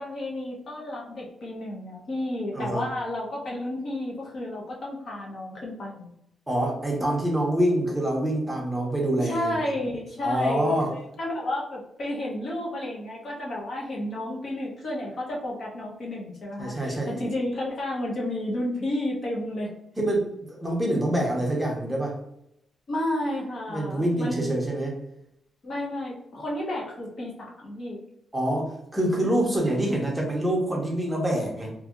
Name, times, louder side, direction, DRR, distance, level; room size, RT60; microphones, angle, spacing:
voice 1, 0.0-6.1 9.2-19.7 22.9-24.5 25.6-28.0, left 1 dB, 45° left, -3 dB, 0.8 m, -31 dB
voice 2, 2.5-2.9 6.5-9.6 10.2-10.9 16.6-17.2 20.0-22.2 23.7-25.0 28.3-31.7, right 1 dB, 5° right, -1 dB, 0.7 m, -26 dB
2.7 x 2.6 x 2.4 m, 0.79 s
wide cardioid pair, 165°, 0 cm